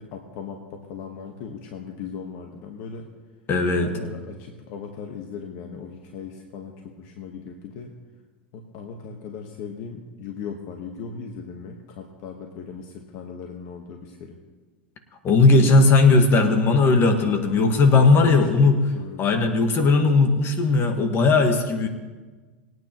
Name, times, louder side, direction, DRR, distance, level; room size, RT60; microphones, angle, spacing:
voice 1, 0.0-3.1 3.8-7.9 8.5-14.4 17.5-19.2, left 5 dB, 60° left, 3 dB, 1.3 m, -38 dB
voice 2, 3.5-3.9 15.2-18.8 19.2-21.9, left 3 dB, 40° left, 6 dB, 1.5 m, -17 dB
20.5 x 9.3 x 3.0 m, 1.3 s
hypercardioid pair, 90°, 6 cm